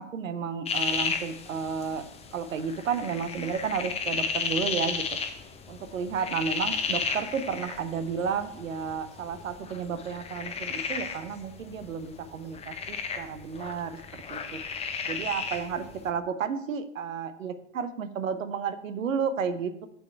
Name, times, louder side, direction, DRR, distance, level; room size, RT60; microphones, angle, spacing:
voice 1, 0.0-2.0 2.3-5.0 5.7-14.6 15.0-19.9, right 6 dB, 75° right, 10 dB, 1.0 m, -32 dB
sound 1, 0.7-16.1, left 5 dB, 15° left, 0.9 m, -34 dB
7.1 x 6.9 x 4.6 m, 0.71 s
hypercardioid pair, 100°, 40 cm